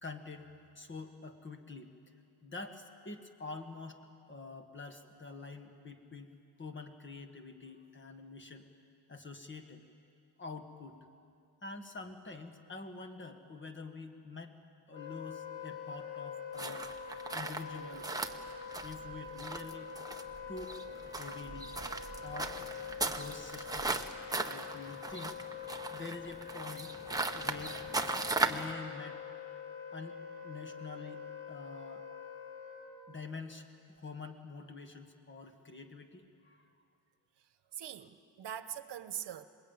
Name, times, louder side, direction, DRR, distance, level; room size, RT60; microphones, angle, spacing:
voice 1, 0.0-0.5 0.7-1.9 2.4-4.0 4.3-6.3 6.6-8.7 9.1-9.8 10.4-11.0 11.6-14.5 14.9-16.9 17.3-18.2 18.8-19.9 20.5-20.7 21.1-21.7 22.2-22.6 23.0-25.4 25.9-26.9 27.3-27.8 28.5-29.2 29.9-32.1 33.1-36.7, left 3 dB, 25° left, 6 dB, 1.6 m, -46 dB
Wind instrument woodwind instrument, 14.9-33.1, left 7 dB, 85° left, 5.0 m, -45 dB
sound 1, 16.6-28.7, right 3 dB, 10° right, 0.8 m, -38 dB
voice 2, 37.4-39.5, right 10 dB, 65° right, 11 dB, 1.1 m, -43 dB
27.0 x 21.5 x 8.9 m, 2.5 s
wide cardioid pair, 180°, 44 cm